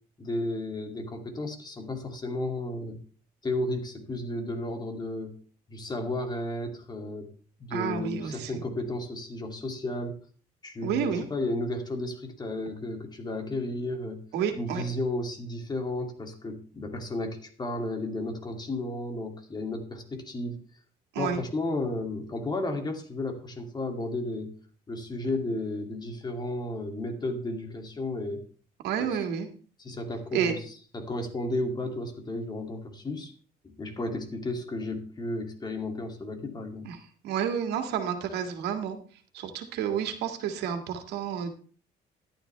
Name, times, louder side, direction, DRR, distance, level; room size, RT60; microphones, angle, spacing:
voice 1, 0.2-3.0 3.4-5.4 5.7-7.3 7.6-10.2 10.6-14.2 14.5-20.6 21.2-24.5 24.9-28.5 29.0-29.2 29.8-33.3 33.6-36.9, left 2 dB, 25° left, 4 dB, 2.7 m, -33 dB
voice 2, 7.7-8.5 10.8-11.2 14.3-14.8 21.2-21.4 28.8-29.5 30.3-30.5 36.9-37.0 37.2-39.0 39.3-41.5, right 8 dB, 80° right, 6 dB, 2.1 m, -30 dB
13.5 x 11.5 x 3.4 m, 0.42 s
cardioid pair, 110°, 17 cm